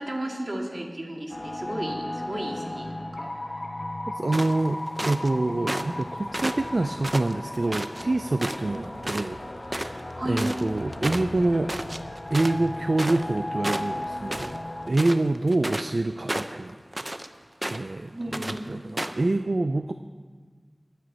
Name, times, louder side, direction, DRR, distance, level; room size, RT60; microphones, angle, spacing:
voice 1, 0.0-3.3 8.7-8.8 10.1-10.5 18.1-18.7, right 1 dB, 50° right, 0 dB, 2.3 m, -33 dB
sound 1, 1.3-14.9, left 1 dB, 60° left, 1.3 m, -36 dB
voice 2, 4.1-9.4 9.7-11.7 12.3-14.5 14.9-17.2 17.7-18.1 18.5-19.9, right 2 dB, 70° right, 9 dB, 0.4 m, -26 dB
sound 2, 4.3-5.3 5.7-6.0 6.3-8.0 8.4-8.8 9.0-9.3 9.5-13.4 13.6-14.6 14.9-15.9 16.3-17.3 17.6-18.0 18.3-18.6 19.0-19.2, right 1 dB, 30° right, 0.7 m, -32 dB
21.5 x 9.5 x 4.1 m, 1.5 s
wide cardioid pair, 50°, 0 cm